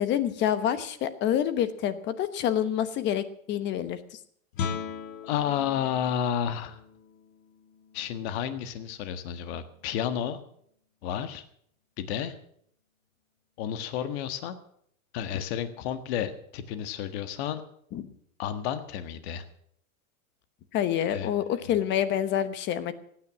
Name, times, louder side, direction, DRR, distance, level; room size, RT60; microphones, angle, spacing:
voice 1, 0.0-4.0 15.3-15.4 17.9-18.0 20.7-22.9, left 10 dB, 25° left, 13 dB, 1.1 m, -27 dB
Guitar, 4.5-10.1, left 6 dB, 70° left, 1.8 m, -40 dB
voice 2, 5.2-6.8 7.9-10.4 11.0-11.4 12.0-12.3 13.6-14.6 15.1-17.6 18.4-19.4 21.0-21.3, left 9 dB, 50° left, 11 dB, 1.6 m, -31 dB
16.5 x 9.6 x 7.5 m, 0.66 s
supercardioid pair, 155°, 42 cm